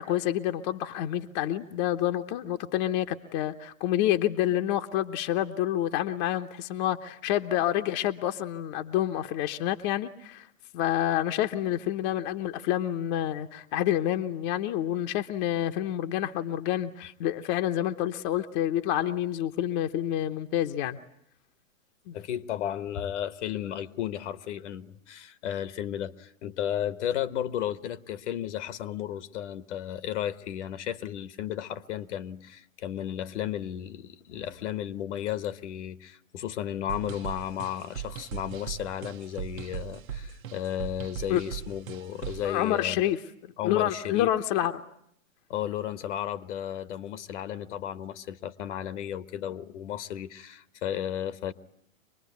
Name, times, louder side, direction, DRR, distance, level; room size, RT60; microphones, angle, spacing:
voice 1, 0.0-10.5 10.7-21.0 22.1-22.2 41.3-41.4 42.4-43.2 43.6-44.7, left 12 dB, 35° left, 0.9 m, -28 dB
voice 2, 22.1-43.0 43.6-44.3 45.5-51.5, left 10 dB, 60° left, 1.2 m, -34 dB
sound 1, 36.9-42.5, right 10 dB, 80° right, 1.3 m, -39 dB
25.0 x 20.5 x 9.4 m
hypercardioid pair, 130°, 40 cm